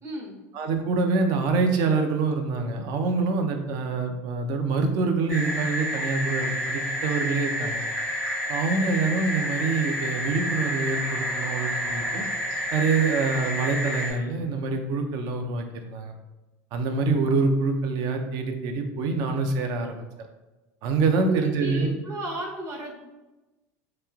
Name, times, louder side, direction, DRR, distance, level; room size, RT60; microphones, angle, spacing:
voice 1, 0.0-0.4 21.2-22.9, right 2 dB, 35° right, -2 dB, 0.9 m, -34 dB
voice 2, 0.5-7.8 8.5-12.2 12.7-16.1 16.7-20.1 20.8-21.9, right 4 dB, 55° right, 5 dB, 0.5 m, -25 dB
sound 1, 5.3-14.1, equal, 80° right, 1.3 m, -29 dB
3.0 x 2.8 x 2.3 m, 1.1 s
supercardioid pair, 100°, 8 cm